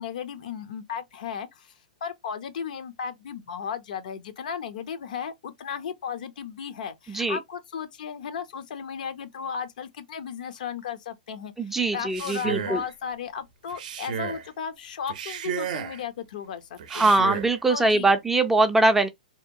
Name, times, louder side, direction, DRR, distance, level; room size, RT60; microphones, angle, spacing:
voice 1, 0.0-17.1 17.7-18.2, left 7 dB, 70° left, 0.5 m, -35 dB
voice 2, 11.6-12.8 16.9-19.1, right 2 dB, 5° right, 0.3 m, -22 dB
Male speech man speaking, 12.0-12.9 13.7-14.5 15.1-16.0 16.8-17.6, right 8 dB, 65° right, 0.5 m, -33 dB
2.7 x 2.2 x 2.6 m
hypercardioid pair, 140°, 5 cm